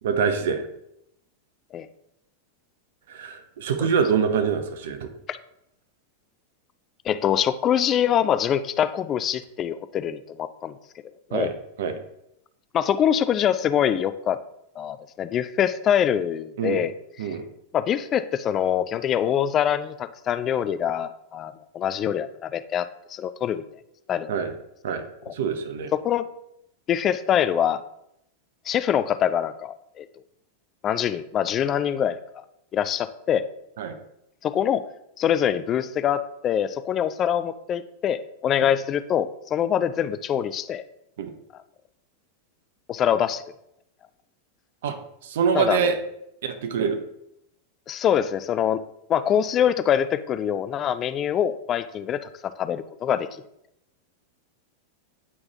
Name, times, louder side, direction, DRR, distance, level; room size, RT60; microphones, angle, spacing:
voice 1, 0.0-0.7 3.1-5.1 11.3-11.5 11.8-11.9 16.6-16.8 17.2-17.4 24.3-24.5 24.8-25.0 25.3-25.9 33.8-34.0 41.2-41.3 44.8-45.0 45.2-46.0 46.4-47.0, right 6 dB, 55° right, 8 dB, 0.6 m, -25 dB
voice 2, 7.1-10.8 11.3-11.5 12.7-14.4 14.8-16.9 17.7-23.6 24.1-24.3 25.3-25.4 25.9-26.3 26.9-27.8 28.7-30.1 30.8-32.4 32.7-33.4 34.4-34.8 35.2-40.8 42.9-43.4 45.5-45.9 47.9-48.8 49.1-53.3, left 9 dB, 30° left, 13 dB, 0.3 m, -24 dB
8.5 x 4.4 x 2.8 m, 0.79 s
figure-of-eight pair, 90°, 0 cm